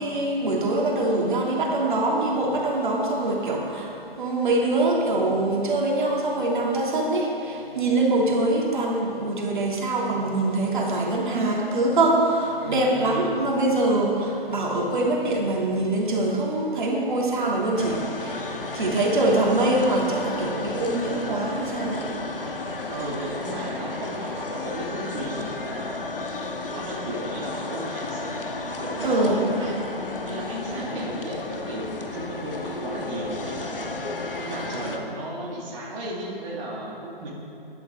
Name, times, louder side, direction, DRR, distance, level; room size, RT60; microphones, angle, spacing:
voice 1, 0.0-22.1 29.0-29.4 30.6-31.0, right 2 dB, 55° right, -2 dB, 2.8 m, -24 dB
voice 2, 12.6-13.4 14.2-14.3 17.4-17.5 22.9-26.0 26.7-28.5 28.8-29.8 30.2-33.8 34.4-37.3, right 1 dB, 30° right, -5 dB, 2.4 m, -35 dB
sound 1, 17.8-35.0, left 3 dB, 65° left, 1.6 m, -33 dB
22.0 x 11.5 x 3.7 m, 2.6 s
figure-of-eight pair, 130°, 30 cm